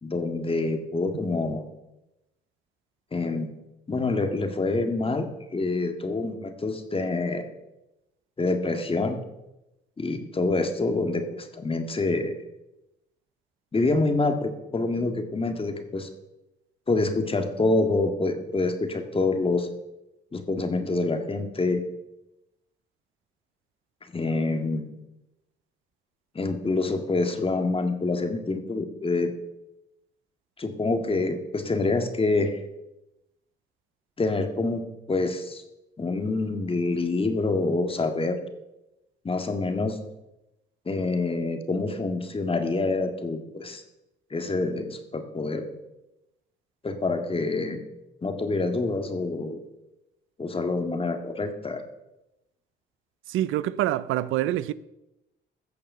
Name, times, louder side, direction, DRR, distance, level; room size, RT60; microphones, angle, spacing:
voice 1, 0.0-1.6 3.1-3.5 3.9-7.4 8.4-9.2 10.0-12.3 13.7-16.1 16.9-19.7 20.3-21.8 24.1-24.8 26.4-29.3 30.6-32.6 34.2-35.6 36.0-38.4 39.2-40.0 40.9-43.8 44.3-45.6 46.8-47.8 48.2-49.6 50.4-51.8, left 3 dB, 30° left, 1.8 m, -26 dB
voice 2, 53.3-54.7, right 13 dB, 90° right, 0.5 m, -26 dB
15.0 x 6.6 x 6.6 m
cardioid pair, 90°, 20 cm